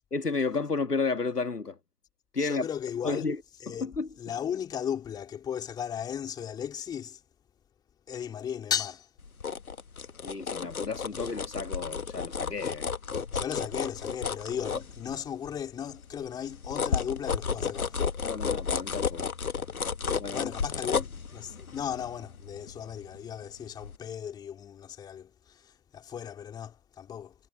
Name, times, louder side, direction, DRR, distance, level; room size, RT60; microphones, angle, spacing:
voice 1, 0.1-1.8 2.3-2.7 3.0-3.4 3.7-4.1 10.2-12.9 18.2-19.3 20.2-20.5, left 4 dB, 85° left, 1.8 m, -32 dB
voice 2, 2.4-3.3 3.6-3.9 4.2-7.2 8.1-9.1 13.3-18.0 20.3-27.3, left 8 dB, 10° left, 2.8 m, -36 dB
sound 1, 9.2-15.5 15.9-23.4 23.8-24.0, left 6 dB, 65° left, 1.6 m, -33 dB
figure-of-eight pair, 140°, 46 cm